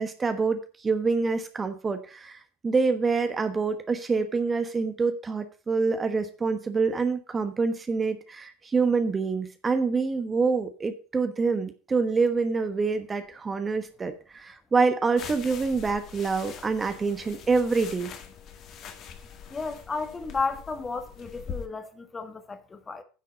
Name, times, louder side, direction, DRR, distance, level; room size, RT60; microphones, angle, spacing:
voice 1, 0.0-18.1, right 4 dB, 20° right, 1.2 m, -26 dB
sound 1, 15.2-21.7, left 7 dB, 45° left, 1.7 m, -43 dB
voice 2, 19.5-23.0, left 4 dB, 20° left, 1.5 m, -33 dB
9.7 x 6.3 x 5.7 m
figure-of-eight pair, 75°, 0 cm